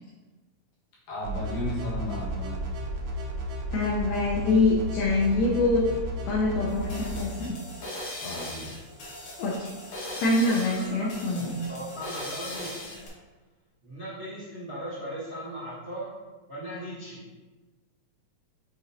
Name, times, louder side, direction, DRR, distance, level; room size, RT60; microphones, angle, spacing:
voice 1, 1.1-2.6 8.2-8.7, left 1 dB, 90° left, -8 dB, 3.4 m, -34 dB
sound 1, 1.2-7.2, equal, 90° right, 2.7 m, -33 dB
voice 2, 3.7-5.8 6.2-7.6 9.4-9.7 10.2-11.5, left 2 dB, 70° left, -3 dB, 1.8 m, -25 dB
sound 2, 6.7-13.1, left 1 dB, 55° left, 1.9 m, -39 dB
voice 3, 10.6-13.0 13.8-16.1 16.5-17.3, right 1 dB, 75° right, -10 dB, 0.6 m, -38 dB
7.3 x 4.5 x 2.9 m, 1.2 s
omnidirectional pair, 3.8 m